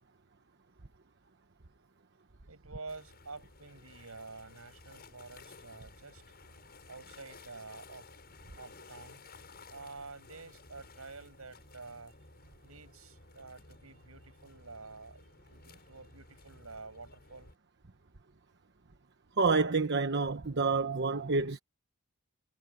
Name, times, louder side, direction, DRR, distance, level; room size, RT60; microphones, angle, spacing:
voice 1, 2.5-6.3 6.9-8.1 8.6-9.2 9.7-12.1 12.6-17.5, right 3 dB, 75° right, 7.6 m, -49 dB
sound 1, 2.9-17.5, left 3 dB, 45° left, 7.5 m, -55 dB
voice 2, 19.4-21.6, right 4 dB, 55° right, 1.1 m, -28 dB
head